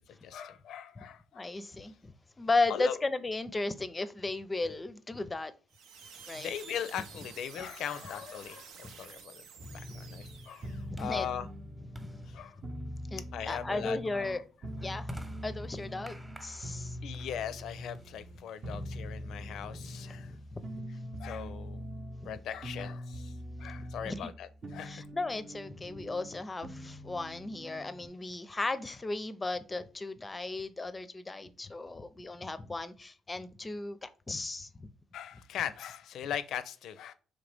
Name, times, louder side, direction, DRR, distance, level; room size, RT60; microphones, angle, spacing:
voice 1, 0.2-1.5 2.7-3.0 6.3-9.4 9.7-11.5 12.3-12.6 13.3-14.4 14.8-14.9 17.0-20.3 21.2-21.8 22.2-23.3 23.6-25.0 35.1-37.1, left 9 dB, 75° left, 0.4 m, -39 dB
voice 2, 1.3-5.5 6.3-6.5 8.8-8.9 10.9-11.3 12.0-12.1 13.1-14.4 14.8-15.1 15.4-17.0 20.5-20.9 24.0-24.3 24.8-34.9, left 3 dB, 25° left, 0.5 m, -35 dB
sound 1, 5.7-10.9, right 6 dB, 90° right, 0.6 m, -51 dB
sound 2, 8.3-18.6, equal, 15° right, 0.9 m, -53 dB
sound 3, 9.6-28.1, equal, 40° right, 0.7 m, -43 dB
3.9 x 3.2 x 3.3 m
cardioid pair, 90°, 0 cm